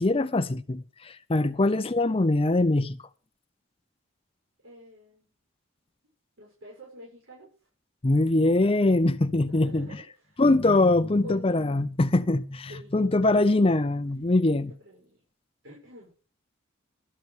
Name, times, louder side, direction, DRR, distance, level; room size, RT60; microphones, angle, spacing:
voice 1, 0.0-3.0 8.0-9.9 10.4-14.7, left 2 dB, 25° left, 0.6 m, -23 dB
voice 2, 4.6-5.3 6.4-7.5 9.2-10.4 11.2-11.7 12.7-12.9 13.3-13.6 14.5-15.2 15.6-16.1, right 1 dB, 80° right, 7.1 m, -47 dB
13.0 x 6.8 x 7.8 m
head